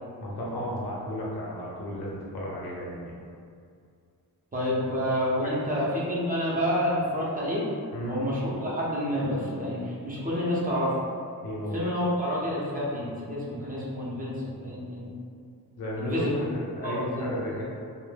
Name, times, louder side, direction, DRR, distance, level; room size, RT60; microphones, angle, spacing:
voice 1, 0.2-3.1 5.4-5.6 7.9-8.2 11.4-11.8 15.8-16.2 16.5-17.6, equal, 85° left, -5 dB, 0.7 m, -34 dB
voice 2, 4.5-7.7 8.0-10.9 11.7-15.1 16.0-16.4 16.8-17.6, equal, 25° right, -7 dB, 0.5 m, -29 dB
2.2 x 2.0 x 3.2 m, 2.3 s
wide cardioid pair, 140°, 37 cm